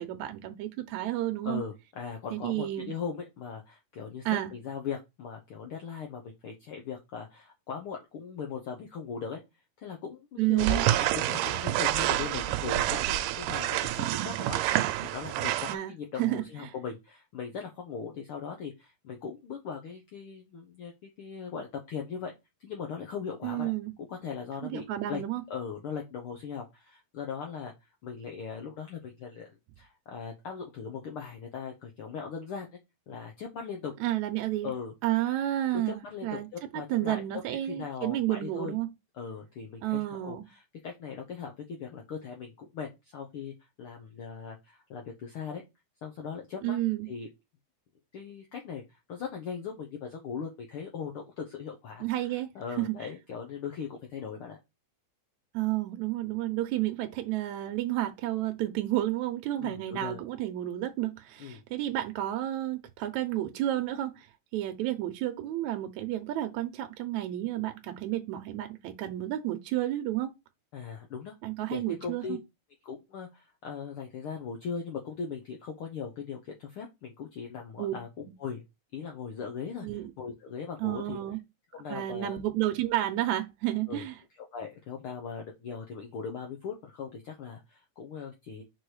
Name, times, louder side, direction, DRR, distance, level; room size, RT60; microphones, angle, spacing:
voice 1, 0.0-1.6 2.3-3.0 4.3-4.5 10.4-10.8 15.7-16.7 23.4-23.9 24.6-25.4 34.0-34.7 35.0-36.5 36.7-38.9 39.8-40.5 46.6-47.1 52.0-52.5 52.8-53.1 55.5-64.3 64.5-70.3 71.4-72.4 77.8-77.9 79.8-80.1 80.8-81.4 81.9-84.2, right 14 dB, 75° right, 1.9 m, -31 dB
voice 2, 1.4-9.4 9.8-14.6 15.0-22.3 22.6-23.7 24.1-25.2 25.5-27.7 28.0-32.8 33.1-33.9 34.6-34.9 35.7-37.4 37.7-38.7 39.1-45.6 46.0-46.8 47.1-47.3 48.1-54.6 59.6-60.2 61.4-61.6 70.7-71.3 71.7-72.4 72.8-78.6 78.9-79.9 80.2-81.2 81.7-82.4 83.9-84.1 84.5-88.6, left 6 dB, 85° left, 1.2 m, -39 dB
sound 1, 10.6-15.8, right 14 dB, 90° right, 2.2 m, -28 dB
4.8 x 4.5 x 4.8 m
omnidirectional pair, 3.7 m